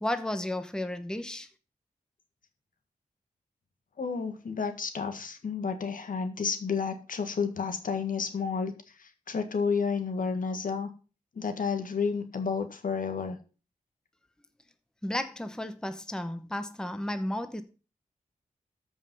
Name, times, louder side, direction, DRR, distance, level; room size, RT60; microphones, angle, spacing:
voice 1, 0.0-1.5 15.0-17.6, left 1 dB, 5° left, 0.9 m, -33 dB
voice 2, 4.0-8.7 9.3-10.9 11.4-13.4, left 5 dB, 70° left, 1.7 m, -31 dB
13.5 x 5.4 x 5.4 m
wide cardioid pair, 100°, 14 cm